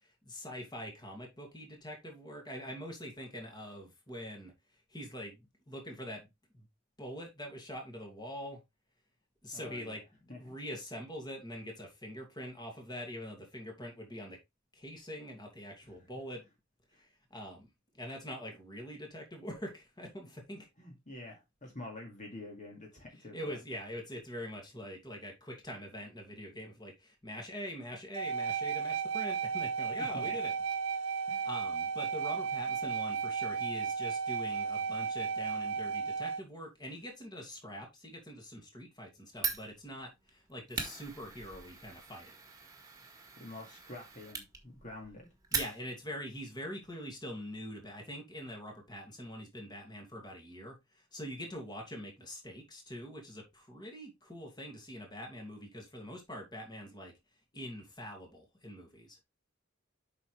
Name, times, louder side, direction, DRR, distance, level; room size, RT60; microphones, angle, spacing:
voice 1, 0.0-4.5 4.9-6.3 6.5-6.7 7.0-8.6 9.4-10.0 10.3-14.4 14.7-16.5 16.9-17.7 17.9-20.7 23.3-30.5 30.9-42.4 45.5-57.1 57.5-59.2, equal, 20° left, 2.5 m, -44 dB
voice 2, 9.5-10.0 10.3-10.5 15.8-15.9 16.9-17.0 20.8-23.6 30.1-30.4 31.3-31.5 43.4-45.3, left 2 dB, 35° left, 2.2 m, -47 dB
sound 1, 28.1-36.4, right 6 dB, 70° right, 0.7 m, -34 dB
Fire, 39.4-46.2, right 5 dB, 15° right, 1.8 m, -41 dB
8.1 x 5.8 x 3.3 m
head